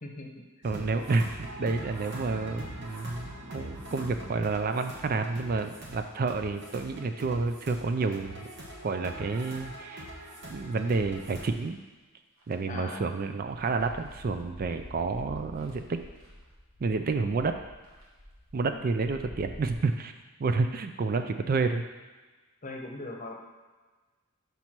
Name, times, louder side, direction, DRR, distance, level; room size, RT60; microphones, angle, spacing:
voice 1, 0.0-0.4 12.7-13.1 18.7-18.8 22.6-23.3, left 2 dB, 35° left, 1 dB, 0.9 m, -40 dB
voice 2, 0.6-8.4 8.8-10.1 10.5-11.8 12.5-16.0 16.8-17.5 18.5-20.1 20.4-21.8, right 3 dB, 45° right, 7 dB, 0.4 m, -29 dB
sound 1, 0.6-11.5, right 1 dB, 60° right, 1.2 m, -43 dB
sound 2, 11.4-11.7 12.4-12.5 12.9-19.7, left 1 dB, 80° right, 1.5 m, -48 dB
5.3 x 4.5 x 5.9 m, 1.3 s
head